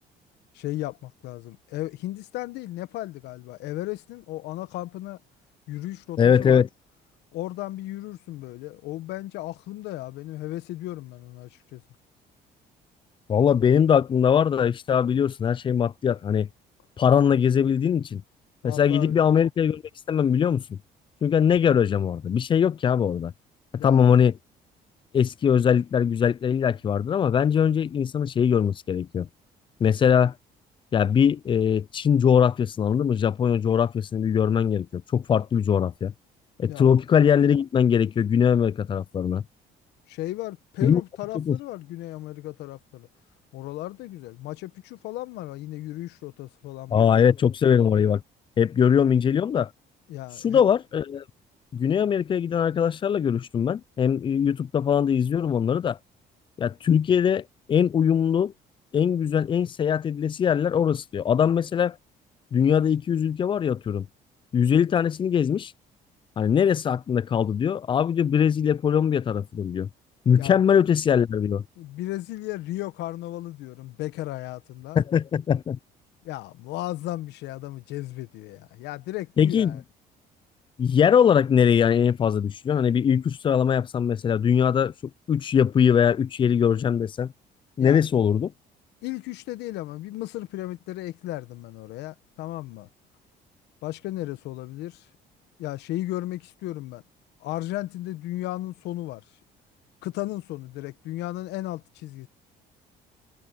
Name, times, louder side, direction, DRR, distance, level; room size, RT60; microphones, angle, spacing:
voice 1, 0.5-5.2 5.7-6.7 7.3-11.8 18.6-19.2 23.8-24.0 36.6-36.9 40.1-43.1 43.5-47.3 50.1-50.6 70.3-70.6 71.8-75.0 76.2-79.8 87.8-88.0 89.0-92.9 93.8-95.1 95.6-97.0 97.4-99.2 100.0-102.3, left 16 dB, 85° left, 1.2 m, -35 dB
voice 2, 6.2-6.7 13.3-16.5 17.0-18.2 18.6-19.8 20.1-20.8 21.2-23.3 23.8-24.4 25.1-29.3 29.8-30.3 30.9-36.1 36.6-39.4 40.8-41.0 41.3-41.6 46.9-48.2 48.6-49.7 50.4-51.2 51.7-56.0 56.6-58.5 58.9-62.0 62.5-64.1 64.5-65.7 66.4-69.9 70.3-71.6 75.0-75.8 79.4-79.8 80.8-84.9 85.3-87.3 87.8-88.5, left 8 dB, 30° left, 0.4 m, -21 dB
cardioid pair, 110°, 17 cm